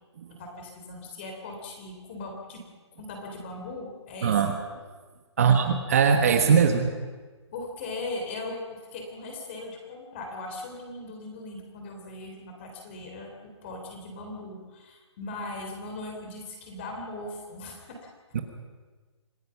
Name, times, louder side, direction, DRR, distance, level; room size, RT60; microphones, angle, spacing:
voice 1, 0.3-2.6 2.9-4.4 5.4-5.7 7.5-18.1, left 2 dB, 25° left, 2 dB, 3.8 m, -39 dB
voice 2, 4.2-4.6 5.4-6.9 18.3-18.4, right 6 dB, 30° right, 5 dB, 1.3 m, -20 dB
26.5 x 18.0 x 5.8 m, 1.4 s
hypercardioid pair, 175°, 15 cm